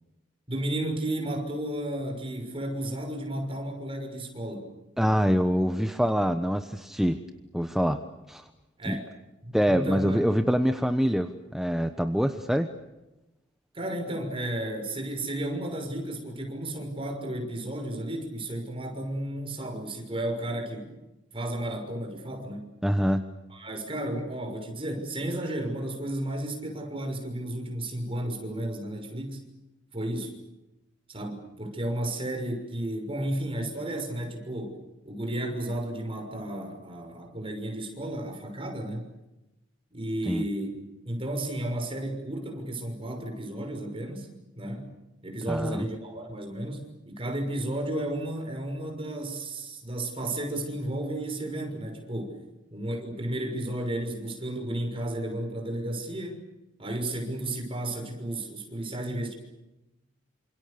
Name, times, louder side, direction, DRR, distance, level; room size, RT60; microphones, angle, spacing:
voice 1, 0.5-4.7 8.8-9.1 9.4-10.2 13.7-21.0 21.3-22.6 23.5-29.4 29.9-30.3 31.1-34.8 35.0-39.1 39.9-40.8 41.0-44.3 44.6-44.9 45.2-52.4 52.7-56.4 56.8-59.4, right 1 dB, 30° right, 4 dB, 6.2 m, -33 dB
voice 2, 5.0-7.2 7.5-8.0 8.3-8.4 8.9-9.0 9.5-12.7 22.8-23.2 40.3-40.4 45.5-45.8, equal, ahead, 6 dB, 1.1 m, -25 dB
29.0 x 27.0 x 6.8 m, 0.99 s
head